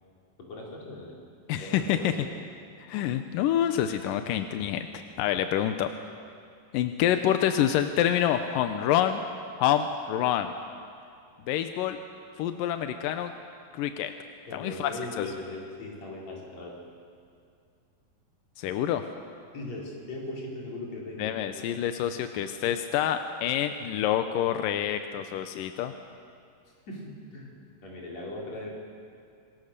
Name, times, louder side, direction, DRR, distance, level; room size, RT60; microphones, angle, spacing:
voice 1, 0.4-1.2 1.6-2.3 14.5-16.8 19.5-21.4 26.9-28.7, left 2 dB, 45° left, -2 dB, 5.2 m, -39 dB
voice 2, 1.5-2.1 2.8-5.9 6.7-9.2 9.6-10.5 11.5-12.0 12.4-13.3 13.7-14.1 14.5-15.3 18.6-19.0 21.2-25.9, left 10 dB, 75° left, 8 dB, 2.1 m, -27 dB
26.5 x 22.5 x 6.7 m, 2.3 s
omnidirectional pair, 4.6 m